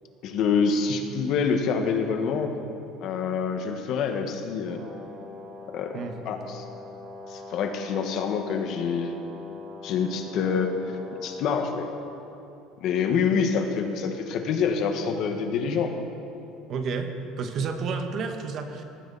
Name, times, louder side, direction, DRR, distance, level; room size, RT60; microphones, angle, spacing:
voice 1, 0.2-2.5 3.0-4.8 5.7-6.0 6.3-6.6 7.3-9.1 9.8-11.9 12.8-15.9, left 6 dB, 55° left, 5 dB, 1.6 m, -26 dB
Brass instrument, 4.6-11.7, left 2 dB, 80° right, 4.4 m, -43 dB
voice 2, 16.7-17.1 17.4-18.8, right 5 dB, 45° right, 6 dB, 1.4 m, -30 dB
19.0 x 15.0 x 4.2 m, 2.9 s
cardioid pair, 135°, 0 cm